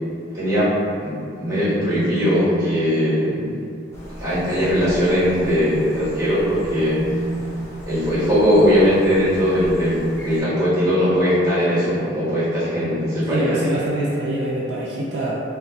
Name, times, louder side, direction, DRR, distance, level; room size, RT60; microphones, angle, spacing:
voice 1, 0.3-0.7 1.0-3.6 4.2-7.0 7.9-13.5, equal, 20° right, -13 dB, 1.2 m, -19 dB
sound 1, 3.9-10.4, right 1 dB, 15° left, 0.5 m, -33 dB
voice 2, 13.3-15.4, right 1 dB, 70° right, -5 dB, 0.3 m, -24 dB
2.4 x 2.4 x 2.3 m, 2.3 s
head